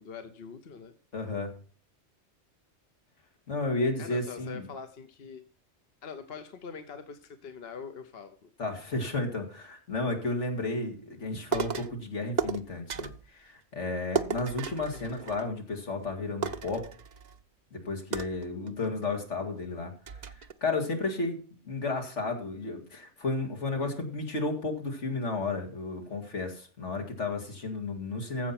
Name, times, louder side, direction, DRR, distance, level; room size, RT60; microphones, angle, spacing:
voice 1, 0.0-0.9 4.0-5.4 6.0-8.5 14.9-15.1, left 6 dB, 60° left, 8 dB, 1.1 m, -43 dB
voice 2, 1.1-1.5 3.5-4.7 8.6-16.9 17.7-19.9 20.3-28.5, left 3 dB, 85° left, 3 dB, 2.6 m, -33 dB
sound 1, 11.5-12.0 12.4-13.3 14.1-15.7 16.0-16.1 16.4-17.4 18.1-19.1 19.6-19.7 20.1-20.5, right 6 dB, 45° right, 0.7 m, -34 dB
15.0 x 5.6 x 5.9 m, 0.40 s
omnidirectional pair, 1.2 m